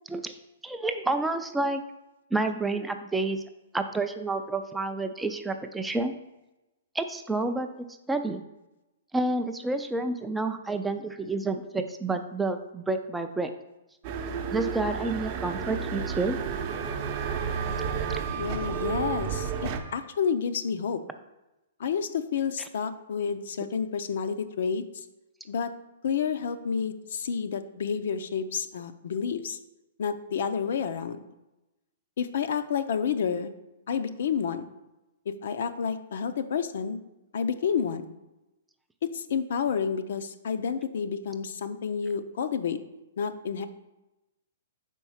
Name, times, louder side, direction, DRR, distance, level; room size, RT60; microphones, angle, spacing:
voice 1, 0.6-1.8 2.3-3.4 3.7-6.1 6.9-7.7 8.1-8.4 9.1-13.5 14.5-16.4 18.1-18.2, right 2 dB, 5° right, 7 dB, 0.3 m, -29 dB
sound 1, 14.0-19.8, right 7 dB, 35° right, 0.7 m, -32 dB
Wind instrument woodwind instrument, 16.5-20.1, right 7 dB, 80° right, 0.6 m, -41 dB
voice 2, 18.4-21.0 21.8-25.0 25.5-25.7 26.0-29.6 30.0-31.2 32.2-33.5 33.9-34.7 35.3-37.0 37.3-38.1 39.0-42.8 43.2-43.7, left 6 dB, 65° left, 10 dB, 0.5 m, -30 dB
5.3 x 4.5 x 5.6 m, 0.98 s
hypercardioid pair, 150°, 0 cm